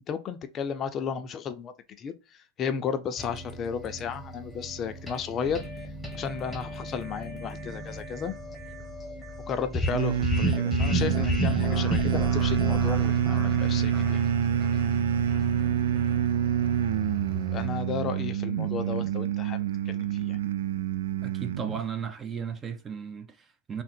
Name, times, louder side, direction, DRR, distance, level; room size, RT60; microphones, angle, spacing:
voice 1, 0.1-5.6 6.1-8.3 9.5-14.2 17.5-20.4, left 7 dB, 35° left, 0.5 m, -34 dB
sound 1, 3.2-17.7, right 1 dB, 5° left, 0.9 m, -32 dB
sound 2, 9.9-21.8, right 10 dB, 85° right, 0.3 m, -27 dB
voice 2, 21.2-23.8, right 7 dB, 25° right, 0.5 m, -35 dB
3.7 x 2.1 x 4.3 m
supercardioid pair, 120°, 0 cm